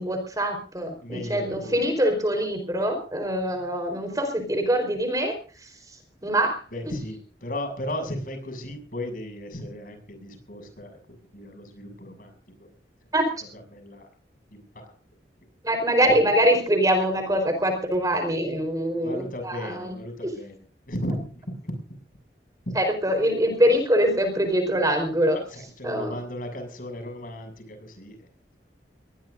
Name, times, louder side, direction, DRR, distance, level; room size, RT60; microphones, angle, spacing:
voice 1, 0.0-5.3 6.2-6.6 13.1-13.3 15.6-19.9 20.2-20.3 22.7-25.4 25.8-26.1, equal, 20° right, 6 dB, 4.4 m, -23 dB
voice 2, 1.0-2.0 6.7-11.0 11.3-12.3 13.4-14.1 14.5-14.9 19.0-20.6 20.9-21.7 22.7-22.8 25.3-28.3, left 1 dB, 50° left, 6 dB, 7.1 m, -35 dB
23.0 x 19.5 x 2.7 m, 0.38 s
head